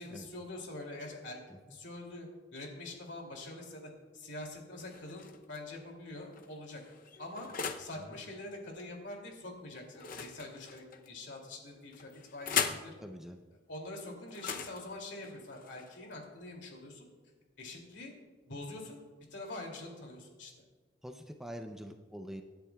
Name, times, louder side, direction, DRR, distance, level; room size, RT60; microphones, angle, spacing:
voice 1, 0.0-1.4 1.7-6.8 7.2-7.5 7.8-12.9 13.7-17.1 17.6-18.1 18.5-19.0 19.3-20.5, left 2 dB, 65° left, 1 dB, 2.7 m, -45 dB
sound 1, 4.8-5.6 6.3-8.0 9.9-11.1 11.9-12.9 14.3-16.2, left 6 dB, 45° left, 0.7 m, -39 dB
voice 2, 12.6-13.4 21.0-22.4, equal, ahead, 5 dB, 0.5 m, -45 dB
25.5 x 10.0 x 2.3 m, 1.4 s
head